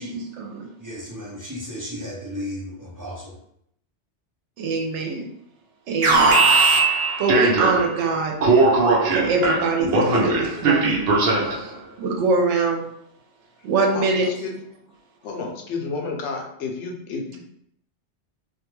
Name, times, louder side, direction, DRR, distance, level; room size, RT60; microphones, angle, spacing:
voice 1, 0.0-0.7 4.6-5.3 5.9-6.5 7.2-8.4 9.1-11.0 11.4-11.7 12.0-12.9 13.6-14.3, right 3 dB, 90° right, 0.9 m, -24 dB
voice 2, 0.8-3.3, left 1 dB, 25° right, 0.5 m, -34 dB
Alarm, 6.0-8.0 8.4-11.7, right 3 dB, 65° right, 0.8 m, -19 dB
voice 3, 13.9-14.5 15.2-17.4, left 4 dB, 85° left, 0.9 m, -31 dB
2.5 x 2.2 x 3.0 m
omnidirectional pair, 1.2 m